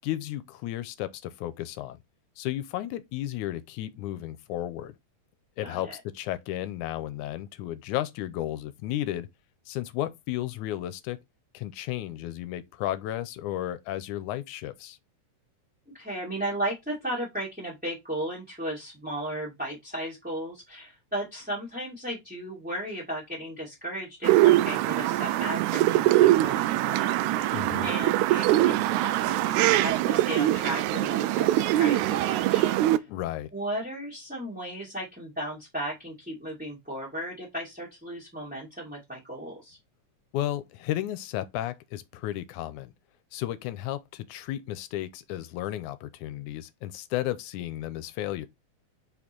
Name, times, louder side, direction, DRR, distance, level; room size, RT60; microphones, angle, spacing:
voice 1, 0.0-2.0 2.4-5.0 5.6-9.3 9.7-11.2 11.5-15.0 27.5-27.9 33.1-33.5 40.3-42.9 43.3-48.5, left 13 dB, 85° left, 2.1 m, -33 dB
voice 2, 5.6-5.9 15.9-33.0 33.5-39.8, right 1 dB, 5° right, 1.9 m, -35 dB
sound 1, 24.2-33.0, right 15 dB, 80° right, 1.9 m, -23 dB
5.4 x 4.2 x 4.5 m
omnidirectional pair, 3.5 m